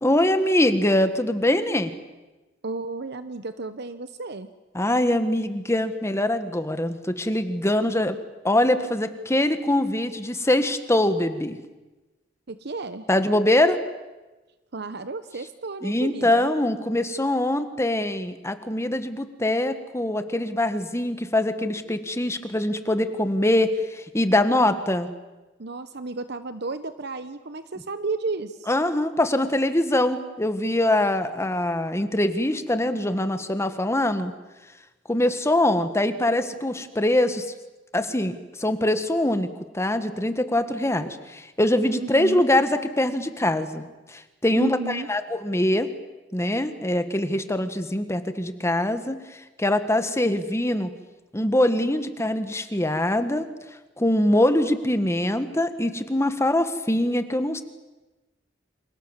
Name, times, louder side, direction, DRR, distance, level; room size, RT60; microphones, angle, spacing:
voice 1, 0.0-1.9 4.7-8.2 8.4-11.6 13.1-13.8 15.8-25.1 28.7-34.3 35.1-37.5 37.9-39.5 39.7-45.9 46.3-50.9 51.3-53.5 54.0-57.6, left 1 dB, 15° left, 10 dB, 1.7 m, -23 dB
voice 2, 2.6-4.5 12.5-13.1 14.7-16.5 25.6-28.7 41.9-42.5 44.6-45.1, right 3 dB, 60° right, 12 dB, 0.9 m, -33 dB
29.0 x 26.5 x 7.4 m, 1.1 s
head